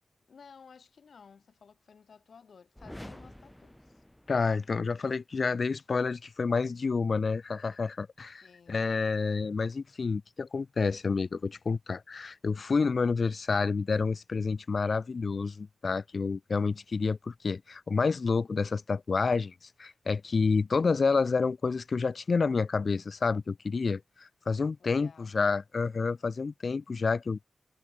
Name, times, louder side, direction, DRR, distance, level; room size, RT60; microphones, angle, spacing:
voice 1, 0.3-4.0 8.4-8.9 24.8-25.4, left 6 dB, 65° left, 5.9 m, -55 dB
sound 1, 2.7-4.7, left 1 dB, 5° left, 2.1 m, -48 dB
voice 2, 4.3-19.5 19.8-27.4, left 4 dB, 45° left, 0.5 m, -29 dB
wide cardioid pair, 175°, 0 cm